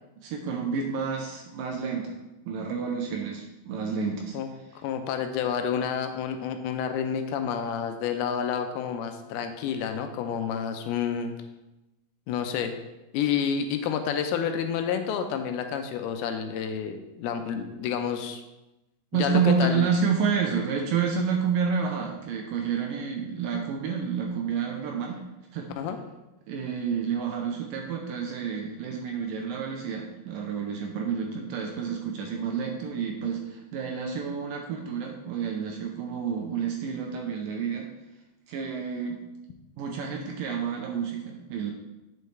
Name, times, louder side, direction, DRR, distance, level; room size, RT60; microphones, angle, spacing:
voice 1, 0.2-2.1 2.5-4.4 19.1-25.2 25.5-25.7 26.5-37.9 38.5-39.2 39.8-41.7, right 6 dB, 75° right, 1 dB, 2.1 m, -29 dB
voice 2, 4.8-11.3 12.3-12.7 13.1-18.4 19.1-19.9 25.8-26.0, left 7 dB, 85° left, 6 dB, 2.5 m, -29 dB
9.3 x 5.6 x 3.2 m, 0.99 s
omnidirectional pair, 4.4 m